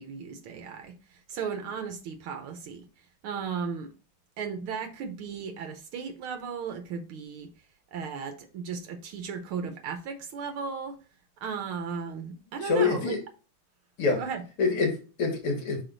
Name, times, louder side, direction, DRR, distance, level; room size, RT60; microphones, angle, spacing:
voice 1, 0.0-2.8 3.2-3.9 4.4-7.5 7.9-11.0 11.4-13.2 14.2-14.4, right 6 dB, 75° right, 1.6 m, -35 dB
voice 2, 12.6-13.2 14.0-14.2 14.6-15.8, left 4 dB, 85° left, 2.6 m, -26 dB
6.0 x 4.8 x 3.9 m
omnidirectional pair, 2.4 m